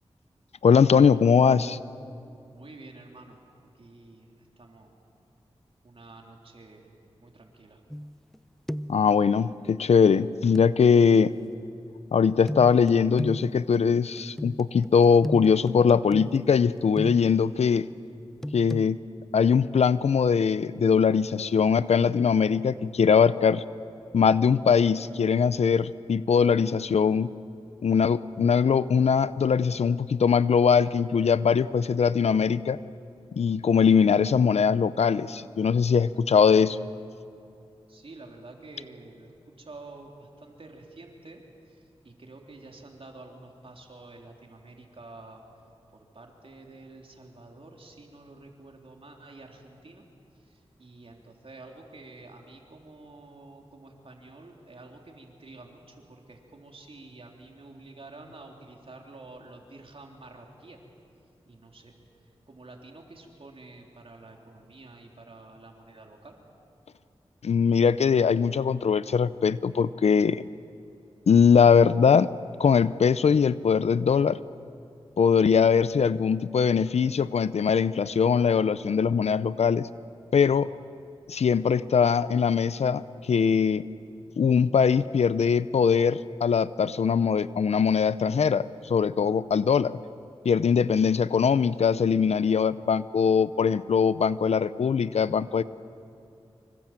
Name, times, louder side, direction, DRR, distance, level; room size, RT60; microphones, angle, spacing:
voice 1, 0.6-1.8 8.9-11.3 12.1-17.9 18.5-19.0 19.3-23.6 24.1-27.3 27.8-32.8 33.3-36.8 67.4-70.4 71.3-72.3 72.6-74.4 75.2-79.9 80.3-80.7 81.3-83.9 84.4-90.0 90.4-95.6, left 6 dB, 90° left, 16 dB, 0.6 m, -21 dB
voice 2, 2.5-3.4 3.7-4.9 5.8-6.9 7.2-7.8 36.1-36.4 37.9-39.3 39.6-45.4 45.9-50.1 50.4-60.8 61.5-66.4, right 2 dB, 60° right, 1 dB, 3.6 m, -49 dB
sound 1, 7.9-8.4 8.7-9.1 10.6-10.7 12.5-17.5 18.4-18.9, equal, 5° left, 0.6 m, -36 dB
26.0 x 24.5 x 7.6 m, 2.6 s
wide cardioid pair, 60°, 11 cm